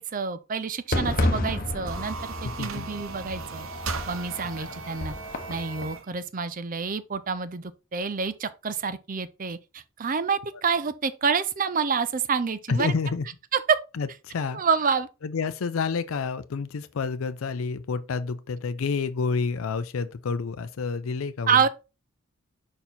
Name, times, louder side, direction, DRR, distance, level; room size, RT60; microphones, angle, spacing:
voice 1, 0.0-3.7 4.1-5.1 5.5-12.9 13.5-13.8 14.5-15.1 21.5-21.7, right 6 dB, 40° right, 0.6 m, -27 dB
Fireworks, 0.9-6.0, left 1 dB, 45° left, 0.9 m, -31 dB
sound 1, 1.7-6.1, right 6 dB, 75° right, 0.8 m, -38 dB
voice 2, 2.4-2.9 4.6-4.7 12.7-13.3 14.0-14.6 15.2-21.6, left 5 dB, 85° left, 0.5 m, -29 dB
5.3 x 4.4 x 4.2 m
head